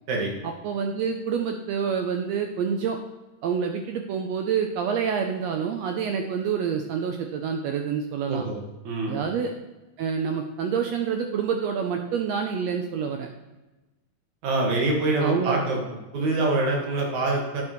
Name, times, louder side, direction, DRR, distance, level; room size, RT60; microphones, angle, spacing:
voice 1, 0.6-3.0 3.4-8.4 9.1-9.5 10.0-13.3 15.2-15.6, right 7 dB, 85° right, 4 dB, 1.5 m, -27 dB
voice 2, 8.8-9.2 14.4-15.8 16.1-17.6, right 2 dB, 65° right, -1 dB, 3.0 m, -25 dB
9.6 x 7.6 x 3.1 m, 1.1 s
omnidirectional pair, 3.6 m